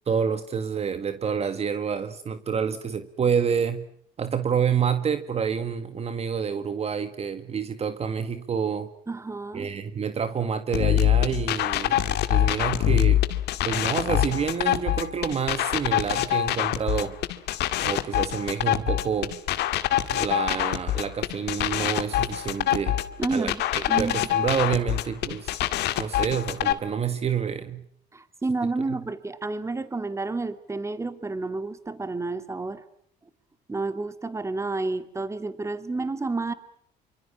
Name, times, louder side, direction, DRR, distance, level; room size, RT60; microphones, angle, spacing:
voice 1, 0.1-3.8 4.2-8.9 9.5-12.0 12.3-13.2 13.6-17.2 17.8-19.4 20.1-23.0 23.3-25.6 26.0-27.8, right 7 dB, 40° right, 10 dB, 1.8 m, -28 dB
voice 2, 9.1-9.7 23.2-24.3 28.1-32.8 33.7-36.5, right 3 dB, 15° right, 11 dB, 2.3 m, -30 dB
sound 1, 10.7-26.7, left 13 dB, 80° left, 2.0 m, -24 dB
27.0 x 25.0 x 7.4 m, 0.64 s
cardioid pair, 110°, 17 cm